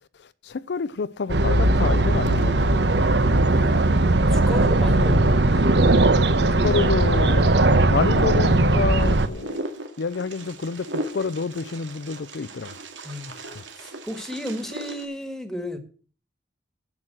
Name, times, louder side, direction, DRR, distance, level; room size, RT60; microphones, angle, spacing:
voice 1, 0.4-2.8 6.4-7.5 7.9-9.6 10.0-12.7, left 4 dB, 65° left, 0.5 m, -28 dB
sound 1, 1.3-9.3, right 2 dB, 65° right, 0.9 m, -19 dB
voice 2, 3.4-5.8 13.0-13.3 13.8-15.8, left 1 dB, ahead, 1.6 m, -33 dB
Wind, 9.0-15.0, right 1 dB, 85° right, 2.3 m, -37 dB
11.0 x 7.4 x 7.8 m
head